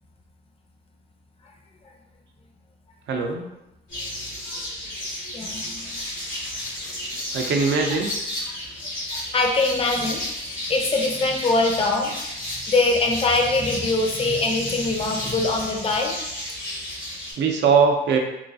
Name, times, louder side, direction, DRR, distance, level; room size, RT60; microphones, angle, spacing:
voice 1, 3.1-3.4 7.3-8.1 17.4-18.2, right 5 dB, 65° right, 2 dB, 0.5 m, -20 dB
sound 1, 3.9-17.3, left 1 dB, 80° left, 1.4 m, -32 dB
voice 2, 5.3-6.0 8.5-8.6 9.1-12.2 12.7-16.2, left 3 dB, 30° left, 1 dB, 0.6 m, -23 dB
3.0 x 2.3 x 2.6 m, 0.90 s
cardioid pair, 90°, 20 cm